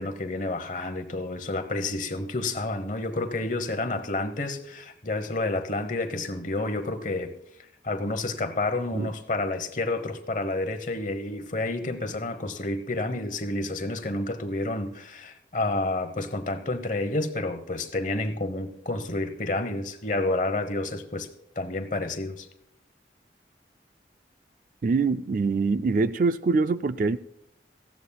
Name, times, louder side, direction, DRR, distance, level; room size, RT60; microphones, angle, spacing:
voice 1, 0.0-7.3 7.8-21.3 21.6-22.5, left 2 dB, 45° left, 1.0 m, -30 dB
voice 2, 24.8-27.2, right 4 dB, 45° right, 0.3 m, -24 dB
18.0 x 15.0 x 2.3 m
head